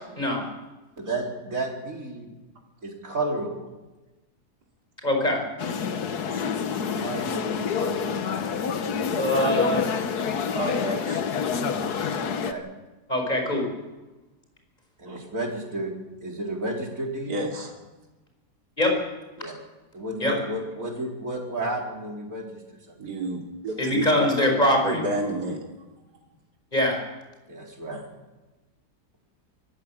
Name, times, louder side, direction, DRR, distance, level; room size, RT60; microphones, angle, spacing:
voice 1, 0.2-0.5 5.0-5.4 9.2-9.9 13.1-13.7 18.8-19.0 20.2-20.3 23.8-25.0 26.7-27.0, left 1 dB, 25° left, 2 dB, 5.2 m, -23 dB
voice 2, 1.0-2.3 2.8-3.7 6.9-8.1 12.3-12.6 15.0-15.9 16.2-17.3 19.4-19.5 19.9-22.6 22.9-23.0 27.5-28.0, right 2 dB, 55° right, -1 dB, 4.7 m, -32 dB
sound 1, 5.6-12.5, left 6 dB, 75° left, 1.7 m, -27 dB
voice 3, 10.5-11.2 15.0-15.2 17.3-17.7 23.0-24.3 24.8-25.7, right 1 dB, 80° right, 0 dB, 3.3 m, -30 dB
24.0 x 16.0 x 7.3 m, 1.1 s
omnidirectional pair, 1.7 m